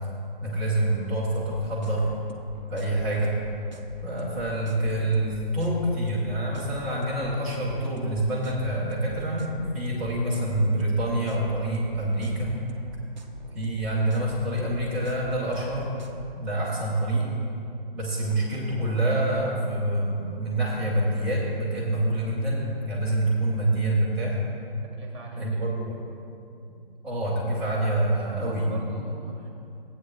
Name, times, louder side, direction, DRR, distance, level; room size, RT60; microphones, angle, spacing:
voice 1, 0.4-2.1 2.7-3.4 4.0-12.6 13.5-15.9 16.4-17.3 17.9-24.4 25.4-26.0 27.0-28.7, right 1 dB, 5° right, -10 dB, 0.9 m, -26 dB
sound 1, 1.3-16.3, right 1 dB, 45° right, 0.7 m, -44 dB
voice 2, 24.8-25.5 28.1-29.5, right 2 dB, 30° right, 0 dB, 1.6 m, -40 dB
16.0 x 8.6 x 2.4 m, 2.6 s
figure-of-eight pair, 145°, 30 cm